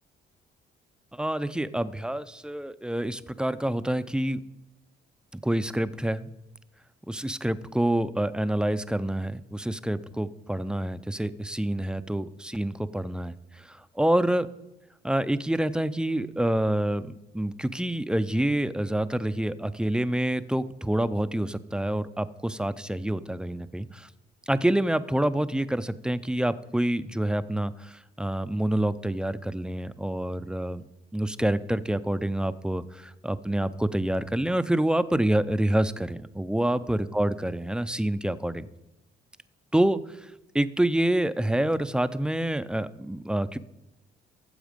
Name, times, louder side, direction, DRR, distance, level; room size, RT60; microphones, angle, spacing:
voice 1, 1.1-4.4 5.4-6.3 7.1-14.5 15.0-24.1 24.5-30.8 31.1-38.7 39.7-43.6, right 1 dB, 5° right, 13 dB, 0.5 m, -27 dB
14.5 x 7.3 x 5.1 m, 0.94 s
cardioid pair, 90°, 20 cm